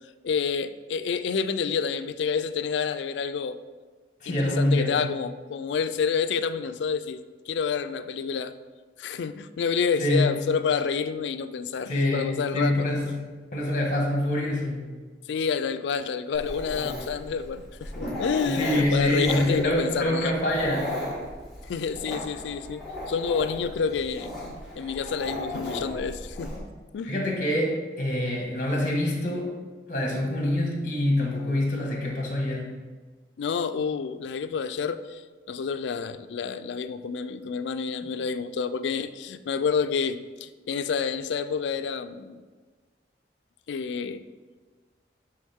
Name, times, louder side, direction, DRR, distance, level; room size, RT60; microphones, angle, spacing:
voice 1, 0.2-3.6 4.3-8.5 9.0-13.2 15.3-20.3 21.7-24.3 24.8-26.5 26.9-27.1 33.4-35.2 35.5-42.4 43.7-44.2, left 6 dB, 80° left, 12 dB, 0.3 m, -29 dB
voice 2, 4.2-5.0 10.0-10.4 11.9-13.1 13.5-14.9 18.5-21.0 27.0-29.6 29.9-32.7, left 1 dB, 45° left, 0 dB, 1.3 m, -25 dB
Dog, 16.3-26.6, left 1 dB, ahead, 1.8 m, -36 dB
8.4 x 3.5 x 3.5 m, 1.4 s
head